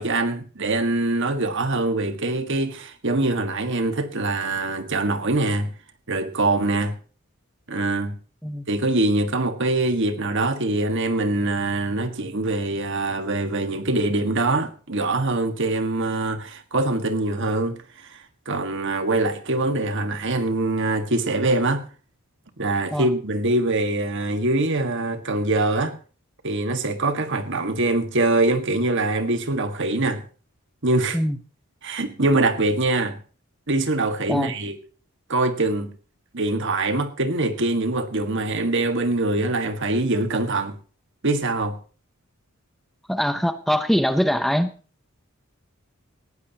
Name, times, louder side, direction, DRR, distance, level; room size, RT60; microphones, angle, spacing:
voice 1, 0.0-5.7 6.1-6.9 7.7-8.1 8.7-18.2 18.4-21.8 22.6-25.9 26.4-30.2 30.8-31.2 31.8-33.2 33.7-34.8 35.3-35.9 36.3-40.8 41.2-41.8, right 2 dB, 55° right, 1.7 m, -23 dB
voice 2, 43.1-44.7, equal, ahead, 0.7 m, -22 dB
19.0 x 15.0 x 2.9 m
head